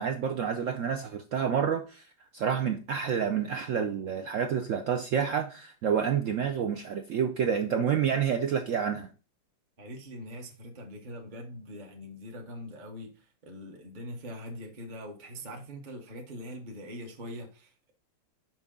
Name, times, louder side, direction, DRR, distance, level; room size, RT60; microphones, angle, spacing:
voice 1, 0.0-2.0 2.3-9.1, right 7 dB, 80° right, 0.7 m, -28 dB
voice 2, 9.8-17.9, equal, 35° right, 0.8 m, -43 dB
6.1 x 5.4 x 3.6 m
omnidirectional pair, 1.9 m